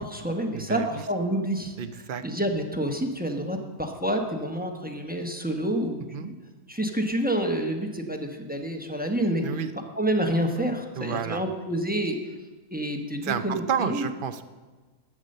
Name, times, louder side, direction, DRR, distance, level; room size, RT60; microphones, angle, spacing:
voice 1, 0.0-1.8 2.2-6.3 6.7-9.6 10.0-12.2 12.7-14.1, right 1 dB, 10° right, 3 dB, 0.8 m, -28 dB
voice 2, 0.5-1.0 1.8-2.2 6.1-6.3 9.4-9.7 11.0-11.4 13.2-14.4, right 7 dB, 55° right, 11 dB, 0.6 m, -30 dB
12.0 x 8.2 x 6.5 m, 1.3 s
omnidirectional pair, 1.5 m